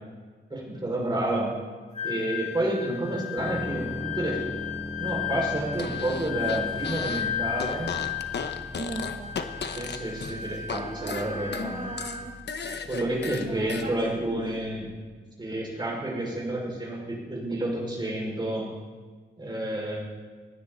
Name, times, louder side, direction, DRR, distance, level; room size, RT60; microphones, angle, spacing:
voice 1, 0.5-1.5 2.0-4.4 5.0-7.9 9.7-11.8 12.9-14.8 15.4-18.7 19.4-20.0, right 1 dB, 20° right, -3 dB, 5.5 m, -30 dB
Wind instrument woodwind instrument, 1.9-12.3, left 10 dB, 35° left, 2.4 m, -34 dB
sound 1, 3.4-15.0, left 1 dB, 10° left, 1.2 m, -41 dB
Fart, 5.7-7.3 7.6-10.8 11.1-13.9, left 5 dB, 60° left, 1.1 m, -35 dB
voice 2, 8.8-9.4 10.7-12.4 13.4-14.7, right 2 dB, 40° right, -3 dB, 2.3 m, -38 dB
19.5 x 17.0 x 4.1 m, 1.4 s
wide cardioid pair, 150°, 20 cm